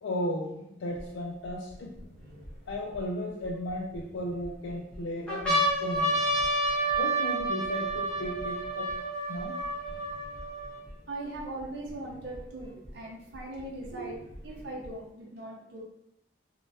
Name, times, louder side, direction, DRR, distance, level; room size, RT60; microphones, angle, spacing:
voice 1, 0.0-2.0 2.7-6.3 7.0-9.0 9.3-9.6 13.9-14.1, left 1 dB, 75° left, 0 dB, 0.3 m, -35 dB
sound 1, 1.0-1.1 1.7-3.0 3.7-4.5 4.9-5.0 5.3-10.9 11.6-11.7 11.9-12.9 13.8-14.9, right 1 dB, 5° left, 0.7 m, -30 dB
voice 2, 2.3-2.6 11.1-14.2 14.4-15.8, right 1 dB, 60° right, -3 dB, 0.6 m, -40 dB
3.2 x 2.2 x 2.6 m, 0.77 s
head